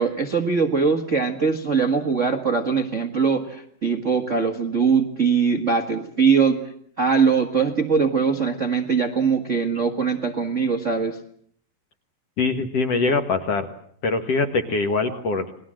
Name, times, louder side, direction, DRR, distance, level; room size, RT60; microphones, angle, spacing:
voice 1, 0.0-6.6 7.0-11.2 15.1-15.2, right 5 dB, 65° right, 4 dB, 0.7 m, -21 dB
voice 2, 12.4-13.7 14.0-15.5, left 3 dB, 55° left, 7 dB, 1.9 m, -23 dB
29.5 x 20.5 x 7.7 m, 0.65 s
omnidirectional pair, 4.6 m